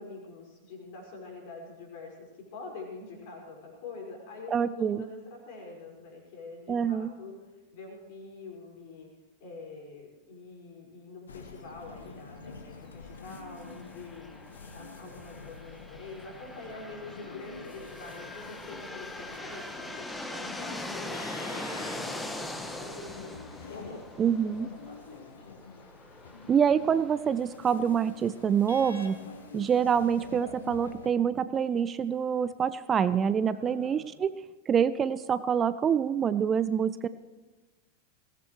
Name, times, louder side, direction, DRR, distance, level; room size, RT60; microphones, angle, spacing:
voice 1, 0.0-7.4 7.7-9.1 9.4-14.4 14.7-25.6 33.5-34.1, left 3 dB, 50° left, 0 dB, 5.4 m, -45 dB
voice 2, 4.5-5.0 6.7-7.1 24.2-24.7 26.5-29.2 29.5-34.3 34.7-37.1, right 7 dB, 25° right, 15 dB, 0.4 m, -26 dB
sound 1, 11.3-31.1, left 4 dB, 70° left, 1.2 m, -47 dB
sound 2, 13.1-30.7, left 1 dB, 10° left, 1.4 m, -42 dB
21.0 x 17.5 x 3.2 m, 1.2 s
figure-of-eight pair, 90°, 0 cm